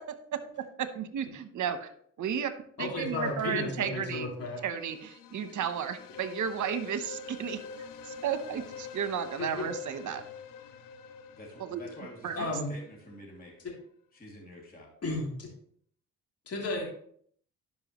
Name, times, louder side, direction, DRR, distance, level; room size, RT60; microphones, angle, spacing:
voice 1, 0.1-1.9 2.2-2.5 2.8-4.3 4.6-7.6 8.0-10.2 11.6-11.8 12.2-12.5, right 8 dB, 60° right, 10 dB, 1.0 m, -33 dB
voice 2, 2.8-4.6 9.4-9.6 12.3-12.7 15.0-15.5 16.5-16.8, left 2 dB, 45° left, -2 dB, 3.2 m, -33 dB
sound 1, 4.4-13.2, left 6 dB, 75° left, 0.8 m, -46 dB
voice 3, 11.3-13.5 14.1-14.9, left 1 dB, 25° left, -2 dB, 2.8 m, -48 dB
11.5 x 5.4 x 3.1 m, 0.62 s
supercardioid pair, 70°, 33 cm